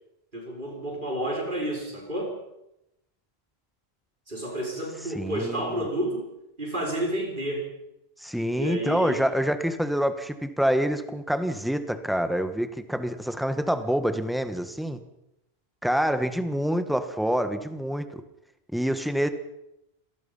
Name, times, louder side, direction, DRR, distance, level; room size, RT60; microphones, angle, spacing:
voice 1, 0.3-2.4 4.3-6.2 6.6-7.7 8.5-9.3, right 1 dB, 50° right, -1 dB, 6.0 m, -31 dB
voice 2, 5.1-5.8 8.2-15.0 15.8-18.2 18.7-19.3, equal, ahead, 9 dB, 1.5 m, -26 dB
26.0 x 18.5 x 5.6 m, 0.85 s
omnidirectional pair, 1.1 m